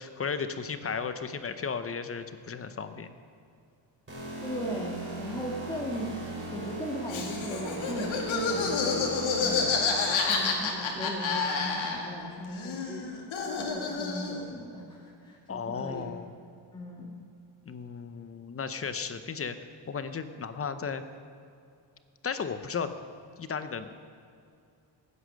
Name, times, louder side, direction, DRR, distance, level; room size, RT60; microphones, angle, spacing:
voice 1, 0.0-3.1 15.5-16.3 17.6-19.6 19.9-21.0 22.2-22.9 23.4-23.9, left 6 dB, 30° left, 10 dB, 0.7 m, -34 dB
sound 1, 4.1-10.6, right 2 dB, 25° right, 4.2 m, -39 dB
voice 2, 4.4-9.8 10.3-13.1 13.7-16.1 16.7-17.2, equal, 10° left, -3 dB, 1.6 m, -38 dB
Laughter, 7.1-12.3 12.5-14.5, left 4 dB, 80° left, 2.3 m, -29 dB
16.5 x 9.6 x 6.4 m, 2.4 s
cardioid pair, 150°, 46 cm